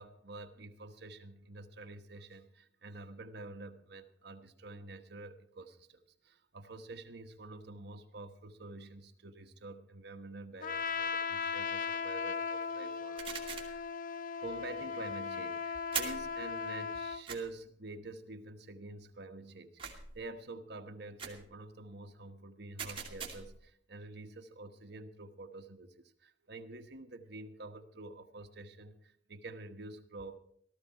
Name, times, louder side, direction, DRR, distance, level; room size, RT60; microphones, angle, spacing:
voice 1, 0.0-13.8 14.4-30.4, right 2 dB, 60° right, 6 dB, 1.2 m, -48 dB
Trumpet, 10.6-17.2, left 5 dB, 50° left, 0.5 m, -37 dB
sound 1, 13.2-13.8 15.9-16.3 17.3-17.4 19.8-20.2 21.2-21.5 22.8-23.6, right 7 dB, 30° right, 2.6 m, -40 dB
17.0 x 14.0 x 4.5 m, 0.65 s
head